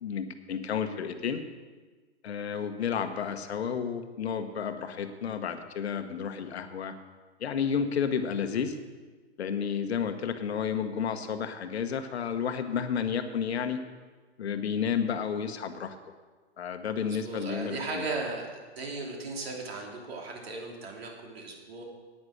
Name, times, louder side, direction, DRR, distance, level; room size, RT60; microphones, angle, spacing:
voice 1, 0.0-1.4 2.2-6.9 7.4-8.8 9.4-13.8 14.4-16.0 16.6-18.1, left 7 dB, 65° left, 8 dB, 1.2 m, -31 dB
voice 2, 17.0-18.5 18.8-21.8, right 3 dB, 60° right, 0 dB, 3.2 m, -36 dB
10.0 x 9.4 x 6.4 m, 1.4 s
hypercardioid pair, 150°, 34 cm